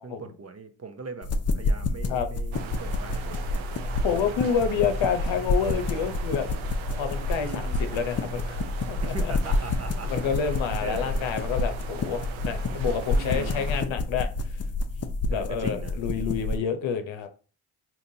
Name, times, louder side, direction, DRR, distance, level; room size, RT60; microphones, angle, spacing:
voice 1, 0.0-3.7 4.4-4.8 7.4-7.9 9.0-10.3 10.8-11.3 13.1-13.7 15.3-16.0, right 4 dB, 30° right, 0.7 m, -40 dB
sound 1, 1.2-16.6, left 2 dB, 35° left, 0.5 m, -29 dB
sound 2, 2.5-13.8, right 7 dB, 80° right, 0.6 m, -40 dB
voice 2, 4.0-6.5 6.9-8.6 8.9-9.3 10.0-14.3 15.3-17.3, left 7 dB, 70° left, 0.8 m, -28 dB
3.9 x 2.9 x 2.7 m
supercardioid pair, 50°, 47 cm